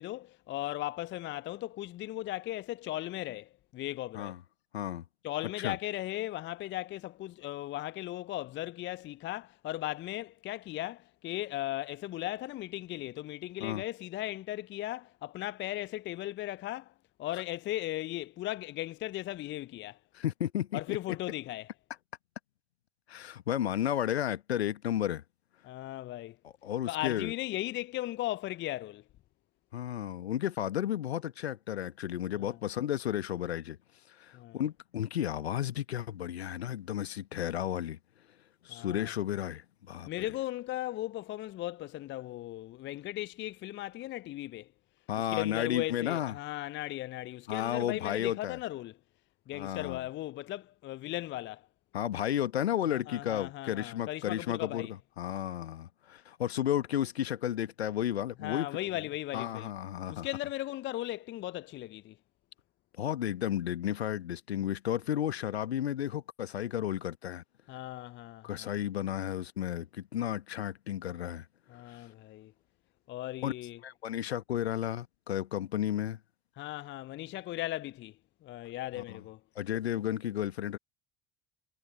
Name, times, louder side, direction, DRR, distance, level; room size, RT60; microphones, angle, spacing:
voice 1, 0.0-4.4 5.2-16.9 17.2-20.0 20.7-21.7 25.6-26.4 26.9-29.0 32.3-32.6 34.3-34.6 38.7-39.1 40.1-44.7 45.3-49.0 49.5-51.7 52.9-54.9 58.4-59.7 60.1-62.2 67.7-68.7 71.7-72.5 73.1-73.8 76.6-78.2 78.4-79.4, left 15 dB, 35° left, 0.7 m, -37 dB
voice 2, 4.7-5.0 5.6-5.8 13.6-13.8 20.1-21.0 23.1-25.2 26.6-27.3 29.7-33.8 34.1-38.0 38.6-40.1 45.1-46.3 47.5-48.6 49.5-50.0 51.9-54.9 55.2-58.7 59.3-60.3 63.0-67.4 68.4-71.4 71.9-72.0 73.4-73.5 73.8-76.2 79.1-79.2 79.5-80.8, left 11 dB, 75° left, 1.6 m, -33 dB
figure-of-eight pair, 65°, 32 cm